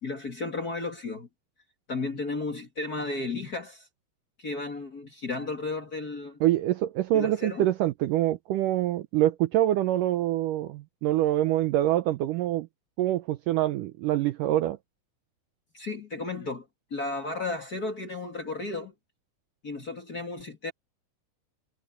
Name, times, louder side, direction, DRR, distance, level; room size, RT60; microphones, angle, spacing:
voice 1, 0.0-1.3 1.9-3.9 4.4-6.4 7.1-7.7 15.7-18.9 19.6-20.7, left 3 dB, 30° left, 2.2 m, -34 dB
voice 2, 6.4-12.7 13.0-14.8, right 13 dB, 75° right, 2.0 m, -25 dB
omnidirectional pair, 4.4 m